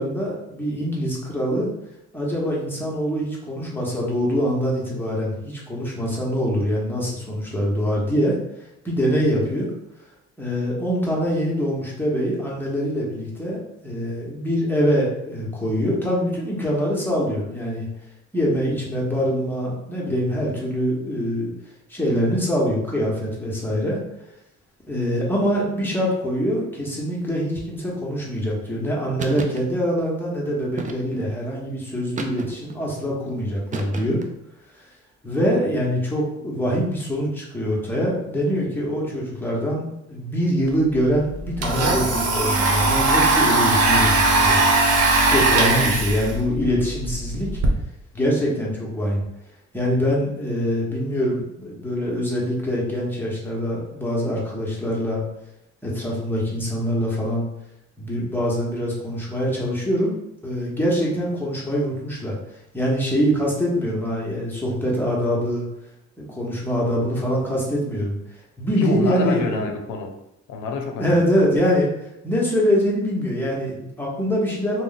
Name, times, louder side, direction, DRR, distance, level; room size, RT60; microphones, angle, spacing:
voice 1, 0.0-1.7 2.1-8.3 8.8-9.7 10.4-13.6 13.8-17.9 18.3-21.5 21.9-24.0 24.9-34.2 35.2-39.8 40.1-44.6 45.3-47.5 48.1-49.2 49.7-55.2 55.8-57.4 58.0-60.1 60.4-62.3 62.7-65.7 66.3-68.2 68.6-69.6 71.0-71.9 72.2-74.8, equal, 5° left, -4 dB, 1.0 m, -24 dB
Books Falling, 29.2-29.6 30.8-31.3 32.2-32.8 33.7-34.4, right 4 dB, 25° right, 0.4 m, -33 dB
Domestic sounds home sounds, 40.7-40.8 41.1-47.7, right 2 dB, 55° right, 0.7 m, -20 dB
voice 2, 45.3-46.0 68.8-70.1 70.5-71.3, left 4 dB, 85° left, 4 dB, 0.6 m, -28 dB
2.4 x 2.2 x 3.9 m, 0.85 s
cardioid pair, 90°, 30 cm